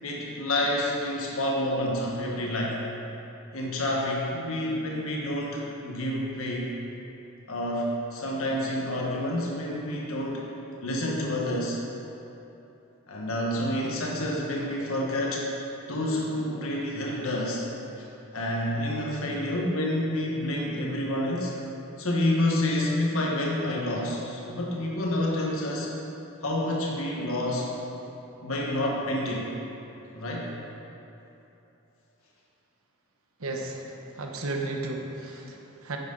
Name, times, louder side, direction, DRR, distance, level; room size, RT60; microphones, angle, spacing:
voice 1, 0.0-2.8 3.5-6.7 7.5-10.4 10.8-11.8 13.1-15.5 15.9-17.6 18.0-18.1 18.3-21.5 22.0-25.9 26.4-27.7 28.4-29.5 30.1-30.5, left 1 dB, 75° left, -3 dB, 1.4 m, -28 dB
voice 2, 33.4-36.0, right 2 dB, 80° right, 2 dB, 1.1 m, -34 dB
9.8 x 9.4 x 3.9 m, 3.0 s
head